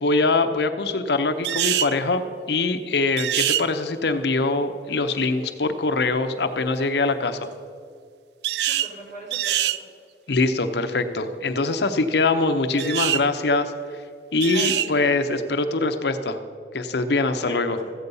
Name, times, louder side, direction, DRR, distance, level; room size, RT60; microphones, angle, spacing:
voice 1, 0.0-7.5 10.3-13.7 14.3-16.4 16.7-17.8, left 3 dB, 70° left, 8 dB, 0.7 m, -23 dB
sound 1, 1.4-1.9 3.2-3.6 8.4-8.9 9.3-9.8 12.8-13.2 14.4-14.9, right 12 dB, 65° right, 0.3 m, -24 dB
voice 2, 8.6-9.9 14.5-15.1 17.4-17.9, right 1 dB, 45° right, -4 dB, 3.3 m, -40 dB
14.0 x 8.1 x 5.4 m, 2.2 s
head